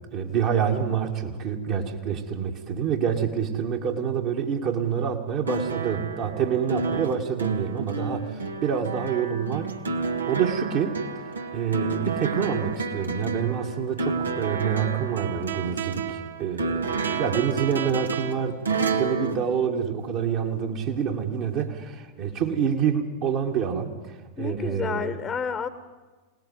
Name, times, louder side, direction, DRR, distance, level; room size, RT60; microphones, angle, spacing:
voice 1, 0.1-9.8 10.3-11.1 11.5-18.6 18.8-25.2, right 7 dB, 45° right, 0 dB, 2.2 m, -27 dB
sound 1, 5.4-20.4 21.6-21.7, right 4 dB, 75° right, 1.6 m, -30 dB
voice 2, 24.4-25.7, left 6 dB, 20° left, 12 dB, 1.2 m, -30 dB
25.5 x 19.0 x 9.6 m, 1.4 s
figure-of-eight pair, 90°, 0 cm